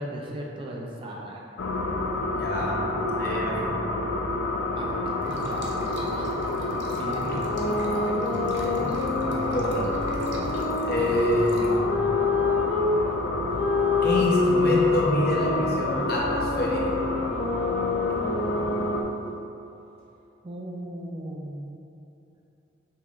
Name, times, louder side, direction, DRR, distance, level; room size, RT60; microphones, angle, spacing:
voice 1, 0.0-1.4 4.8-5.6 6.0-6.4 7.0-7.3 20.4-21.7, right 1 dB, 25° right, -2 dB, 0.4 m, -37 dB
sound 1, 1.6-19.0, left 2 dB, 85° left, 0.4 m, -29 dB
voice 2, 2.4-2.8 3.1-3.8 7.3-7.4 8.6-9.9 10.8-11.7 14.0-16.8, equal, 55° left, -4 dB, 0.7 m, -27 dB
sound 2, 5.2-11.8, right 2 dB, 70° right, 0.6 m, -41 dB
sound 3, 7.3-13.0 13.5-19.1, left 3 dB, 35° left, 1.1 m, -27 dB
5.8 x 3.1 x 2.4 m, 2.9 s
head